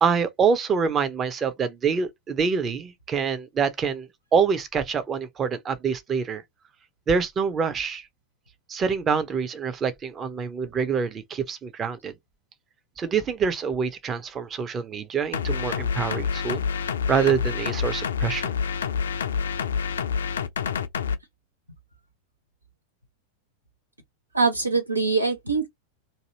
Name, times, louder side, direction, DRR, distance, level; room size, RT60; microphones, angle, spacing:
voice 1, 0.0-6.4 7.1-8.0 8.7-12.1 13.0-18.5, right 6 dB, 25° right, 0.7 m, -26 dB
sound 1, 15.3-21.2, left 6 dB, 65° left, 0.4 m, -27 dB
voice 2, 24.3-25.7, right 4 dB, 85° right, 1.0 m, -23 dB
2.8 x 2.6 x 2.8 m
figure-of-eight pair, 90°, 0 cm